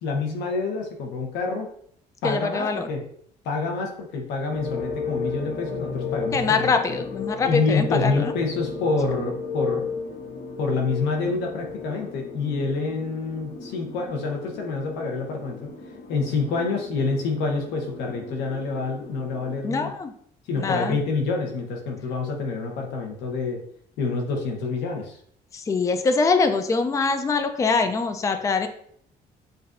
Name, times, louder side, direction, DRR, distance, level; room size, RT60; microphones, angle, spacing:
voice 1, 0.0-1.7 2.2-3.0 3.4-6.7 7.4-9.9 10.6-15.8 16.1-19.9 20.5-23.6 24.0-25.2, left 4 dB, 90° left, 2 dB, 1.0 m, -27 dB
voice 2, 2.2-2.9 6.3-8.3 19.6-20.1 20.6-21.0 25.5-28.7, left 4 dB, 20° left, 7 dB, 0.4 m, -23 dB
sound 1, 4.5-19.8, left 5 dB, 55° left, 0.8 m, -35 dB
6.6 x 2.6 x 2.5 m, 0.65 s
cardioid pair, 110°, 17 cm